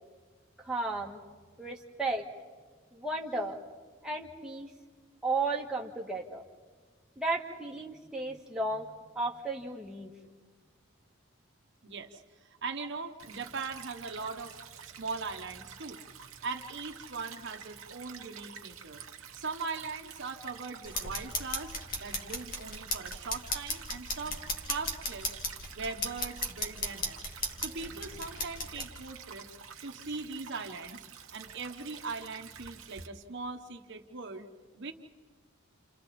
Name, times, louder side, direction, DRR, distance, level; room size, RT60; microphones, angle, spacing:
voice 1, 0.6-1.2 1.6-2.2 2.9-3.6 4.0-4.7 5.2-6.4 7.2-10.1, right 2 dB, 5° right, -2 dB, 1.6 m, -34 dB
voice 2, 11.8-14.6 15.0-16.0 16.4-19.0 19.3-24.4 24.7-25.3 25.7-27.2 27.6-29.6 29.8-31.0 31.3-34.5 34.7-34.9, right 4 dB, 60° right, 5 dB, 1.1 m, -40 dB
Stream / Trickle dribble, 13.2-33.1, right 7 dB, 85° right, 1.0 m, -49 dB
sound 1, 20.8-28.9, left 2 dB, 45° left, 2.2 m, -36 dB
29.5 x 29.0 x 4.3 m, 1.5 s
head